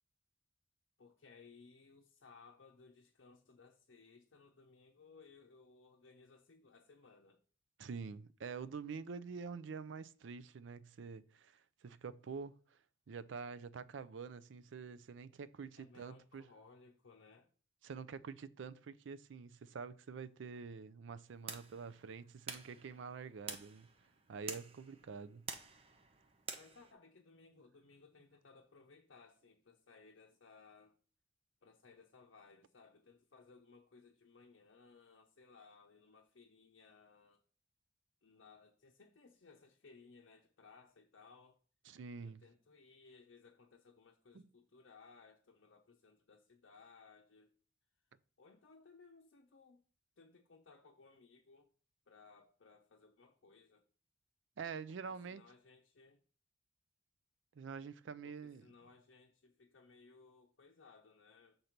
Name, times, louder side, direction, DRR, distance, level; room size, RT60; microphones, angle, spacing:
voice 1, 1.0-7.4 15.8-17.5 26.5-31.0 31.6-37.4 38.2-41.6 42.2-47.5 48.4-49.8 50.2-51.7 52.1-53.8 55.1-56.2 58.2-61.6, left 4 dB, 75° left, 0.7 m, -62 dB
voice 2, 7.8-12.8 13.1-16.4 17.8-23.9 24.3-25.5 41.9-42.4 44.3-44.5 54.6-55.4 57.5-58.7, right 5 dB, 75° right, 0.4 m, -47 dB
sound 1, 21.3-26.9, right 5 dB, 30° right, 0.8 m, -49 dB
6.5 x 4.0 x 5.8 m
head